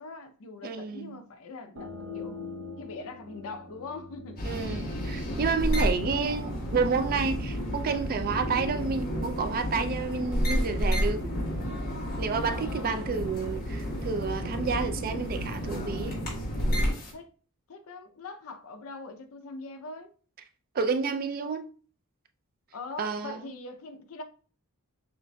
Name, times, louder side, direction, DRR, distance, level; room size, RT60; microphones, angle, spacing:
voice 1, 0.0-2.4 2.8-4.4 5.7-6.5 12.5-13.1 17.1-17.3 17.7-20.1 22.7-24.2, left 3 dB, 65° left, 0.6 m, -42 dB
voice 2, 0.6-1.2 4.4-11.3 12.2-16.2 20.7-21.6 23.0-23.4, right 5 dB, 40° right, 0.4 m, -30 dB
sound 1, 1.8-7.2, left 3 dB, 65° right, 0.7 m, -44 dB
sound 2, 4.4-17.1, equal, 45° left, 1.4 m, -31 dB
6.4 x 2.5 x 2.2 m
head